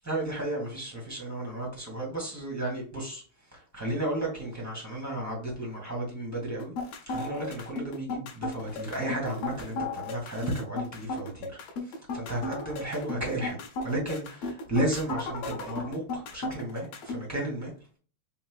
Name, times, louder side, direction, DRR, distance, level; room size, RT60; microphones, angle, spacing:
voice 1, 0.0-3.2 3.5-6.7 7.1-17.7, right 1 dB, 5° right, 2.0 m, -33 dB
sound 1, 6.6-17.2, left 3 dB, 65° left, 2.0 m, -35 dB
5.5 x 3.6 x 2.4 m
omnidirectional pair, 3.4 m